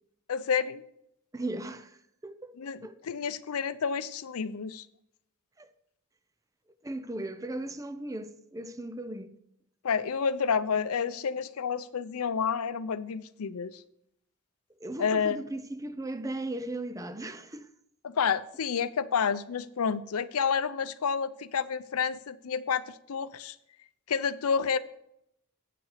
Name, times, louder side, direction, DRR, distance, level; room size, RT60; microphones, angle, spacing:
voice 1, 0.3-0.8 2.6-4.9 9.8-13.8 15.0-15.4 18.0-23.6 24.1-24.8, left 6 dB, 75° left, 0.5 m, -29 dB
voice 2, 1.3-2.6 2.8-3.0 5.6-5.7 6.8-9.3 14.8-17.7, right 2 dB, 15° right, 0.5 m, -37 dB
8.8 x 5.9 x 6.5 m
head